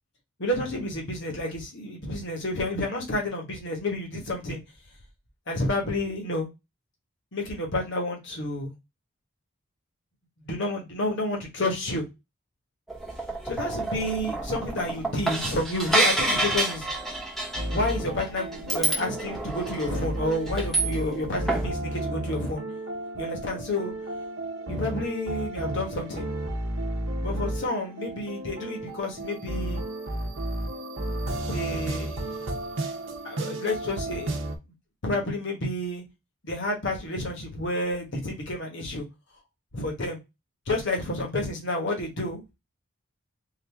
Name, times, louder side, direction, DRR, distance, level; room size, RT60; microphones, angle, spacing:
voice 1, 0.4-4.6 5.5-6.5 7.3-8.7 10.4-12.0 13.4-16.9 17.7-22.6 23.1-23.9 24.7-26.3 27.2-29.8 31.5-32.3 33.2-34.3 35.0-36.0 36.4-39.0 39.7-40.2 40.7-42.4, left 1 dB, 55° left, 1.2 m, -30 dB
sound 1, 12.9-21.2 21.5-21.7, right 2 dB, ahead, 0.8 m, -29 dB
sound 2, 17.5-34.6, right 1 dB, 60° right, 0.8 m, -33 dB
3.9 x 2.6 x 3.3 m
head